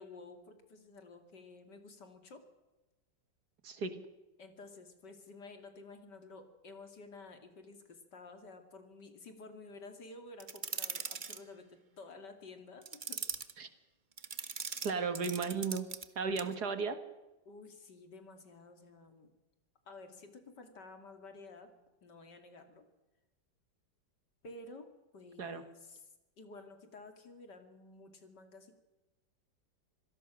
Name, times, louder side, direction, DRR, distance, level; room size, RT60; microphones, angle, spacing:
voice 1, 0.0-2.4 4.4-13.4 17.4-19.3 19.9-21.7 22.0-22.9 24.4-24.9 25.1-28.7, left 3 dB, 65° left, 7 dB, 3.1 m, -52 dB
voice 2, 3.6-4.0 13.6-13.7 14.8-15.9 16.2-17.0 25.4-25.6, right 5 dB, 60° right, 10 dB, 2.1 m, -35 dB
sound 1, 10.4-11.4 12.8-13.5 14.2-16.1 16.4-16.5, right 5 dB, 35° right, 1.0 m, -40 dB
26.0 x 17.5 x 6.3 m, 1.1 s
omnidirectional pair, 2.0 m